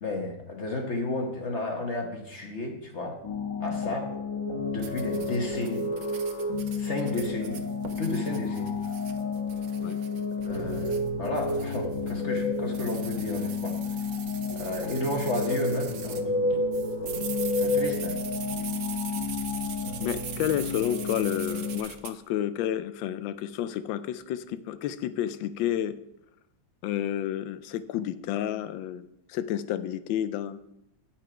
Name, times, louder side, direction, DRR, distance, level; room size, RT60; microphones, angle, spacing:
voice 1, 0.0-3.2 3.6-4.1 4.7-5.9 6.8-7.6 8.0-8.7 10.4-13.8 14.5-16.3 17.6-18.2, left 2 dB, 45° left, 2 dB, 1.1 m, -32 dB
sound 1, 3.2-21.8, left 3 dB, 65° left, 2.2 m, -31 dB
sound 2, 4.8-16.3 16.7-22.1, right 8 dB, 70° right, 0.7 m, -42 dB
voice 2, 20.0-26.0 26.8-30.6, left 11 dB, 85° left, 13 dB, 1.3 m, -30 dB
9.1 x 5.8 x 4.9 m, 0.83 s
omnidirectional pair, 2.0 m